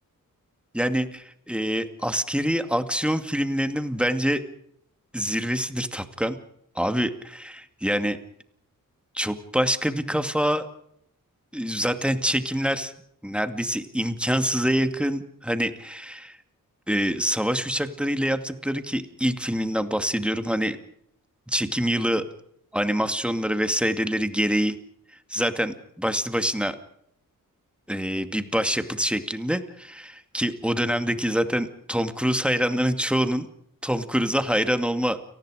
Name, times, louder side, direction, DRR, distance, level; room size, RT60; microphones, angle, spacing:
voice 1, 0.7-4.4 5.1-6.4 6.8-8.2 9.1-10.7 11.5-12.9 13.2-16.4 16.9-20.8 21.5-22.2 22.7-24.8 25.3-26.8 27.9-33.5 33.8-35.2, equal, 5° right, 8 dB, 2.4 m, -25 dB
30.0 x 19.5 x 5.1 m, 0.72 s
cardioid pair, 75°, 35 cm